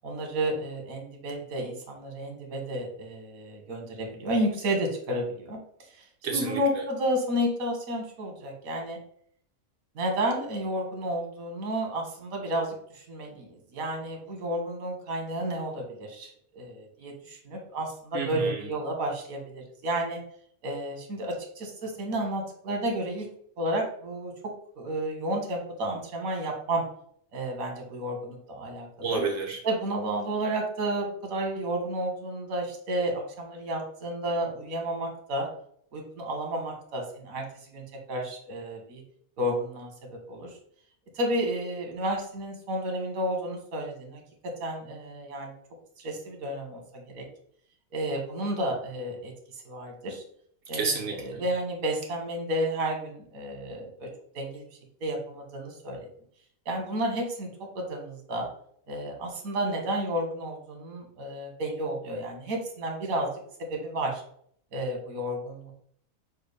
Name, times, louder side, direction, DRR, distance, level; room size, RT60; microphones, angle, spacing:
voice 1, 0.0-9.0 9.9-20.2 20.6-23.3 23.6-24.3 24.8-26.8 27.3-29.2 29.6-35.5 35.9-39.0 39.4-40.6 41.1-45.5 46.0-47.3 47.9-50.2 50.7-54.1 54.3-54.7 55.0-56.1 56.6-57.5 57.7-58.5 58.9-63.3 63.6-64.2 64.7-65.7, right 1 dB, 85° right, 2 dB, 1.5 m, -31 dB
voice 2, 6.2-6.8 18.1-18.7 29.0-29.6 50.7-51.4, right 5 dB, 60° right, 1 dB, 1.2 m, -30 dB
6.3 x 2.3 x 3.3 m, 0.63 s
omnidirectional pair, 1.4 m